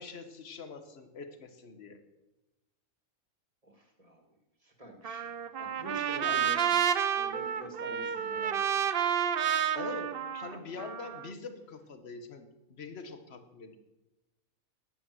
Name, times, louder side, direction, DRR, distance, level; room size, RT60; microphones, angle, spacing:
voice 1, 0.0-2.0 6.2-6.4 9.7-13.8, left 4 dB, 50° left, 8 dB, 1.5 m, -44 dB
voice 2, 3.6-6.8 7.2-8.8, right 1 dB, 25° right, 3 dB, 2.3 m, -46 dB
Trumpet, 5.0-11.3, right 8 dB, 50° right, 0.7 m, -30 dB
10.5 x 10.5 x 7.8 m, 1.0 s
omnidirectional pair, 1.5 m